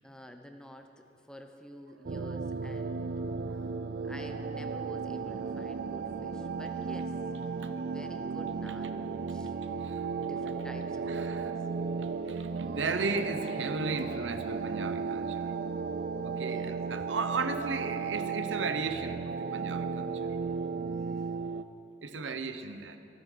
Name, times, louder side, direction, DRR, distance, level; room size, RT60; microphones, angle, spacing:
voice 1, 0.0-3.2 4.1-7.1 7.9-9.0 9.3-9.6 10.1-11.5 16.4-16.7 17.0-17.1 22.1-22.4, equal, 5° left, 5 dB, 0.7 m, -49 dB
sound 1, 2.1-21.6, right 5 dB, 55° right, 0.4 m, -35 dB
voice 2, 11.0-11.5 12.0-15.5 16.2-20.3 22.0-23.0, right 4 dB, 90° right, 9 dB, 0.8 m, -35 dB
26.0 x 9.5 x 3.9 m, 2.7 s
head